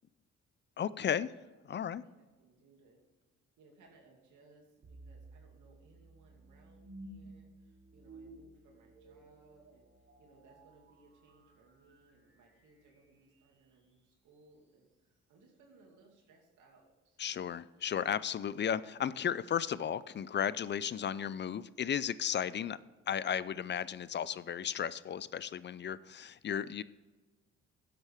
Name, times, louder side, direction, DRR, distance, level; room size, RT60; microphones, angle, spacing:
voice 1, 0.8-1.3 1.6-2.0 17.2-22.8 23.1-26.8, left 8 dB, 35° left, 18 dB, 0.5 m, -34 dB
voice 2, 1.8-3.0 3.6-9.8 10.2-17.2 22.4-22.9, right 3 dB, 80° right, 0 dB, 2.5 m, -64 dB
sound 1, 4.8-13.9, right 2 dB, 40° right, 2.4 m, -55 dB
12.5 x 7.9 x 3.6 m, 1.2 s
cardioid pair, 90°, 30 cm